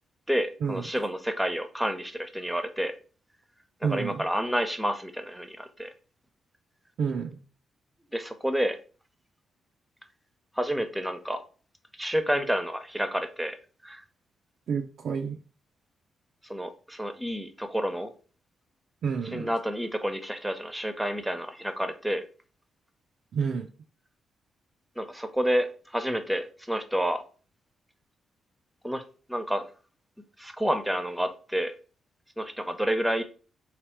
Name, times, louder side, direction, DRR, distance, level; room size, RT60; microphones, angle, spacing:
voice 1, 0.3-2.9 3.8-5.9 8.1-8.8 10.5-11.4 12.0-13.6 13.8-14.0 16.4-18.1 19.3-22.2 25.0-27.2 28.8-29.0 29.3-29.7 30.4-31.7 32.4-33.2, equal, 5° right, 0.7 m, -29 dB
voice 2, 3.8-4.2 7.0-7.4 14.7-15.4 19.0-19.5 23.3-23.7, right 6 dB, 70° right, 0.4 m, -29 dB
3.3 x 2.8 x 4.5 m
supercardioid pair, 55°, 0 cm